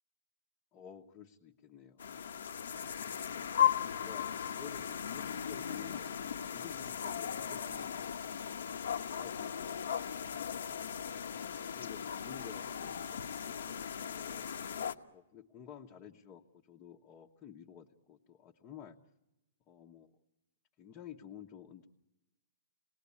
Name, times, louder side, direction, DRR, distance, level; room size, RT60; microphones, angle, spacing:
voice 1, 0.7-2.3 3.7-8.5 11.6-14.5 15.1-19.0 19.7-20.1 20.8-21.9, left 9 dB, 25° left, 0 dB, 1.1 m, -53 dB
sound 1, 2.0-14.9, left 8 dB, 80° left, 1.2 m, -37 dB
27.5 x 19.0 x 8.4 m, 0.99 s
hypercardioid pair, 160°, 0 cm